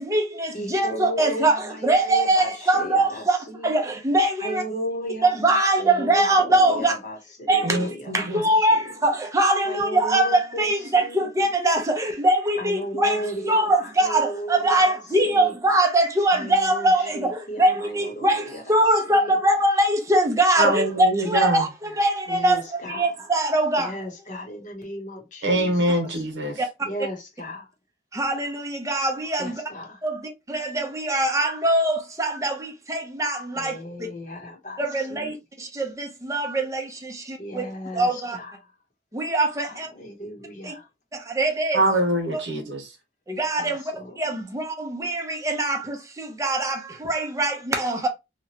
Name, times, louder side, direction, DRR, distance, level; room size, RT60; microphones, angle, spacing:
voice 1, 0.0-4.6 5.2-7.0 7.5-24.0 26.6-26.7 28.1-29.6 30.0-34.1 34.8-37.7 37.9-38.4 39.1-39.9 40.6-40.8 41.1-41.8 42.3-42.4 43.3-43.8 44.2-48.1, right 1 dB, 15° right, 0.6 m, -23 dB
voice 2, 0.5-3.7 4.4-5.4 5.8-8.7 9.6-11.3 12.6-15.5 16.4-18.6 19.1-19.3 22.3-23.1 23.8-26.2 26.8-27.7 29.4-30.0 33.6-34.8 35.1-35.4 37.4-38.5 39.6-40.9 43.6-44.1, equal, 45° left, 0.9 m, -35 dB
voice 3, 7.6-8.4 20.6-21.6 25.4-26.6 41.7-42.9, right 1 dB, 80° right, 1.0 m, -24 dB
2.9 x 2.2 x 2.8 m
head